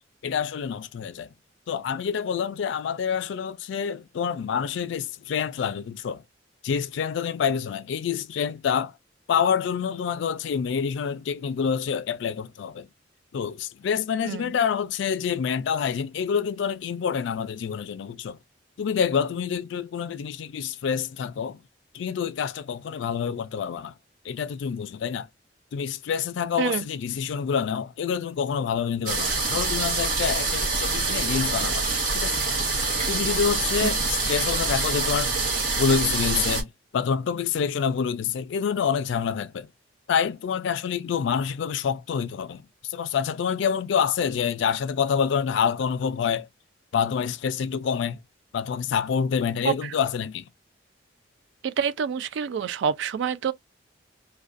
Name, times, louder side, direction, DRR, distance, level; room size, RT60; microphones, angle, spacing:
voice 1, 0.2-1.3 1.7-6.2 6.6-8.9 9.3-12.9 13.3-18.4 18.8-21.6 21.9-23.9 24.2-25.3 25.7-32.5 33.1-35.3 35.8-39.7 40.1-46.5 46.9-48.2 48.5-50.4, left 7 dB, 70° left, 0.3 m, -27 dB
sound 1, 29.1-36.6, right 3 dB, 45° right, 0.9 m, -25 dB
voice 2, 51.6-53.5, right 7 dB, 65° right, 0.3 m, -26 dB
2.4 x 2.2 x 2.4 m
head